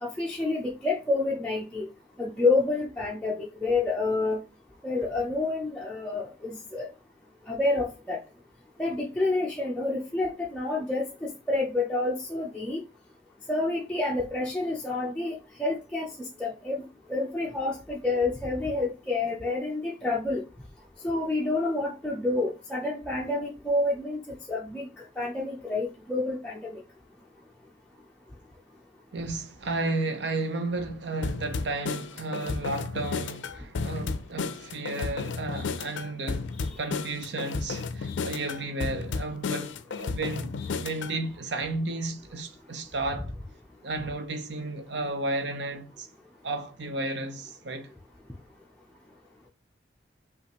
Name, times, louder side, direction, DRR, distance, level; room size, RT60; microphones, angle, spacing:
voice 1, 0.0-1.9 2.2-4.4 4.8-6.9 7.5-8.2 8.8-12.8 13.5-16.1 16.4-16.8 17.1-20.4 21.0-24.2 24.5-24.9 25.2-26.8, left 2 dB, 5° left, 0.5 m, -28 dB
voice 2, 29.1-36.5 36.8-43.3 43.8-46.1 46.4-47.9, right 2 dB, 70° right, 0.7 m, -33 dB
sound 1, 31.2-41.2, left 4 dB, 75° left, 0.4 m, -33 dB
5.5 x 2.5 x 2.9 m
head